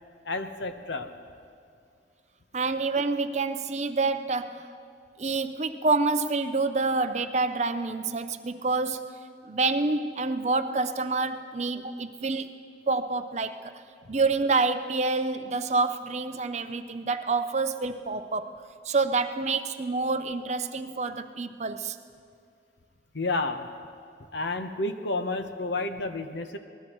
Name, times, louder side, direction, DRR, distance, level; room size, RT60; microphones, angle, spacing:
voice 1, 0.2-1.1 14.0-14.1 23.1-23.7 24.3-26.6, left 2 dB, 85° left, 7 dB, 1.0 m, -30 dB
voice 2, 2.5-4.7 5.2-9.1 9.4-12.5 12.9-13.7 14.1-18.5 18.8-22.0, right 3 dB, 40° right, 9 dB, 0.6 m, -27 dB
23.5 x 19.5 x 3.1 m, 2.3 s
head